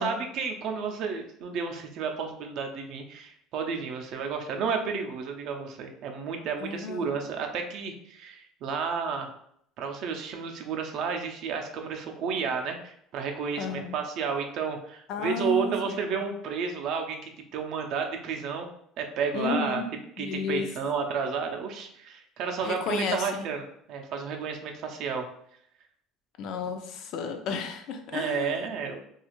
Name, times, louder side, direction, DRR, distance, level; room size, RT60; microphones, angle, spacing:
voice 1, 0.0-9.3 9.8-18.7 19.0-19.8 20.2-25.3 26.6-26.7 28.1-29.0, right 5 dB, 60° right, 4 dB, 0.4 m, -31 dB
voice 2, 6.6-7.0 13.6-13.9 15.1-16.0 19.3-19.9 20.2-20.7 22.6-23.5 26.4-28.6, left 5 dB, 60° left, 6 dB, 0.4 m, -32 dB
2.4 x 2.3 x 3.0 m, 0.69 s
cardioid pair, 130°, 0 cm